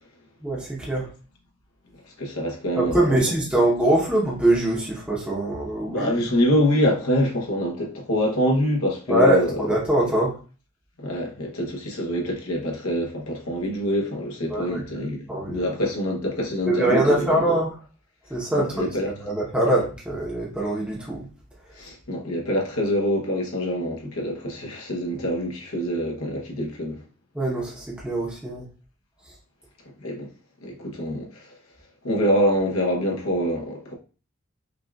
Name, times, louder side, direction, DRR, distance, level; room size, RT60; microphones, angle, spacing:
voice 1, 0.4-1.1 2.8-6.2 9.1-10.3 14.5-14.8 15.3-15.7 16.7-17.8 18.3-18.9 19.2-21.3 27.3-28.6, right 1 dB, 5° right, 0.8 m, -23 dB
voice 2, 2.2-3.2 5.8-9.5 11.0-17.4 18.5-19.1 19.6-19.7 21.8-27.0 30.0-30.3 30.6-31.5 32.0-33.9, equal, 80° left, 1.0 m, -25 dB
5.1 x 2.4 x 2.3 m
head